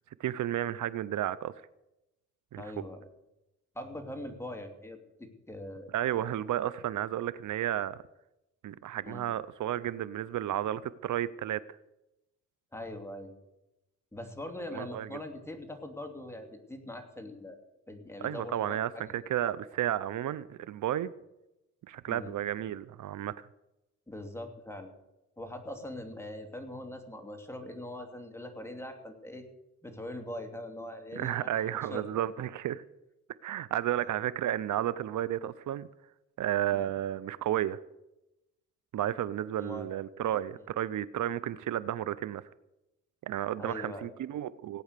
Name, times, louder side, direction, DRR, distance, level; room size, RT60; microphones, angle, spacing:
voice 1, 0.2-1.5 2.5-2.6 5.9-8.0 8.6-11.6 14.7-15.1 18.2-21.1 21.9-23.5 31.1-32.8 33.4-35.9 36.4-37.8 38.9-42.4 43.2-44.8, right 12 dB, 75° right, 18 dB, 0.6 m, -32 dB
voice 2, 2.6-3.1 3.7-5.9 9.0-9.2 12.7-13.3 14.1-17.6 17.9-19.3 22.1-22.3 24.1-24.9 25.4-29.4 29.8-32.0 36.7-36.9 39.6-39.9 43.6-44.1, left 1 dB, 10° left, 5 dB, 2.8 m, -42 dB
17.5 x 9.2 x 6.7 m, 0.92 s
cardioid pair, 80°, 30 cm